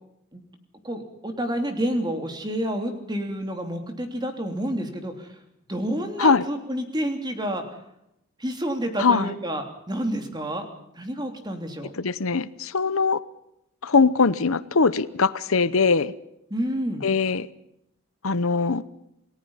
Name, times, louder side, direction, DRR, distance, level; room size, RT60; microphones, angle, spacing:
voice 1, 0.8-5.3 5.7-7.7 8.4-10.7 10.9-11.9 16.5-17.0, right 1 dB, 20° right, 5 dB, 3.0 m, -29 dB
voice 2, 9.0-9.3 11.9-13.2 13.8-16.1 17.0-17.5 18.2-18.8, left 4 dB, 70° left, 16 dB, 0.8 m, -21 dB
28.5 x 18.5 x 5.7 m, 0.79 s
head